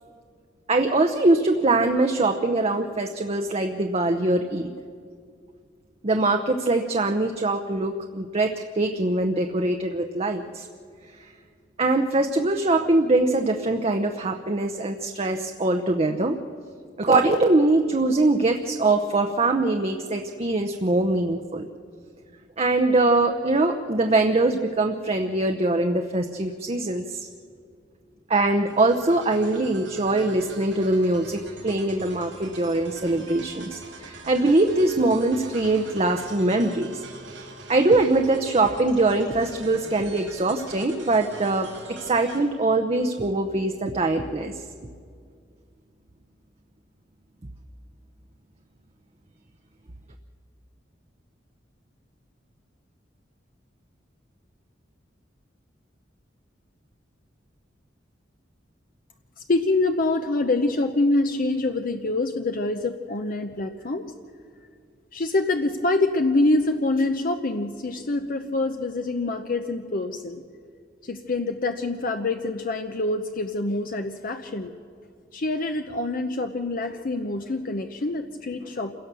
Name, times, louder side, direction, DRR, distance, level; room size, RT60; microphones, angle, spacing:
voice 1, 0.7-4.7 6.0-10.7 11.2-11.3 11.8-16.4 17.0-21.7 22.6-27.3 28.3-37.0 37.7-41.7 42.0-44.5, right 2 dB, 35° right, 5 dB, 0.8 m, -22 dB
sound 1, 28.7-42.4, right 3 dB, 90° right, 5.0 m, -43 dB
voice 2, 59.4-64.1 65.1-70.4 71.0-74.7 75.3-78.9, left 2 dB, 50° left, 6 dB, 0.8 m, -25 dB
27.5 x 17.0 x 6.9 m, 2.2 s
head